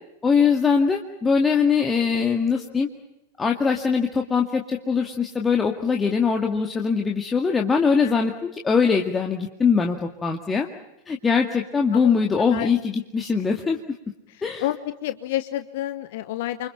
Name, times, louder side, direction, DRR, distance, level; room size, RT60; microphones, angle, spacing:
voice 1, 0.2-2.9 3.4-10.7 11.1-13.8 14.4-14.7, left 5 dB, 15° left, 2 dB, 2.1 m, -22 dB
voice 2, 15.0-16.7, left 14 dB, 50° left, 11 dB, 1.1 m, -29 dB
30.0 x 26.0 x 5.7 m, 0.90 s
figure-of-eight pair, 90°, 0 cm